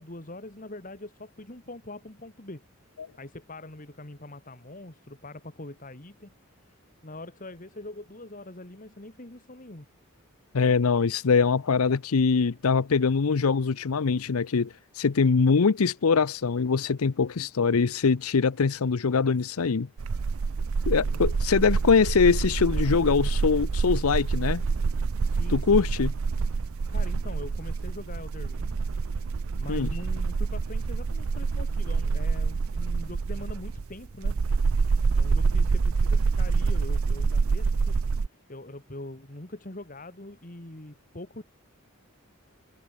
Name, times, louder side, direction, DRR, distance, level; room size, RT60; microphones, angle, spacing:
voice 1, 0.0-2.9 3.2-6.3 6.7-9.9 21.0-21.3 25.3-25.9 26.9-28.8 29.5-34.4 35.2-41.4, left 1 dB, 40° left, 2.1 m, -43 dB
voice 2, 10.5-19.9 20.9-24.6 25.5-26.1 29.7-29.9, left 5 dB, 80° left, 0.6 m, -23 dB
sound 1, 20.0-38.3, right 4 dB, 75° right, 0.5 m, -26 dB
head